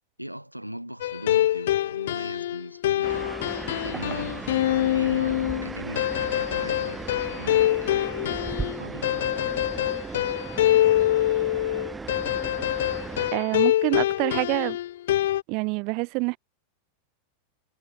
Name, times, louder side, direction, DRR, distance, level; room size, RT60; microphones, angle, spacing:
voice 1, 0.2-3.3 3.8-9.2, right 1 dB, 90° right, 2.9 m, -40 dB
sound 1, 1.0-15.4, left 13 dB, 55° left, 0.8 m, -25 dB
sound 2, 3.0-13.3, right 4 dB, 10° right, 1.3 m, -36 dB
voice 2, 13.3-14.8 15.5-16.4, right 30 dB, 45° right, 0.4 m, -26 dB
figure-of-eight pair, 90°, 0 cm